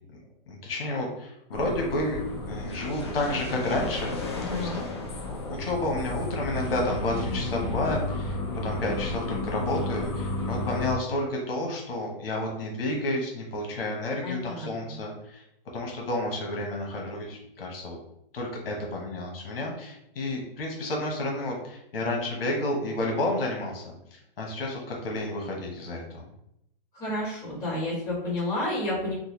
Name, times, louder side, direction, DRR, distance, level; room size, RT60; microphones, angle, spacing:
voice 1, 0.5-4.2 4.5-5.0 5.2-8.4 8.6-15.4 15.7-18.0 18.3-26.2, left 1 dB, 75° left, -1 dB, 1.2 m, -31 dB
sound 1, 1.5-10.9, left 2 dB, 30° left, 0.3 m, -32 dB
voice 2, 4.3-4.8 14.2-15.0 26.9-29.1, left 1 dB, 10° left, -12 dB, 1.4 m, -31 dB
3.8 x 2.2 x 3.1 m, 0.78 s
hypercardioid pair, 175°, 29 cm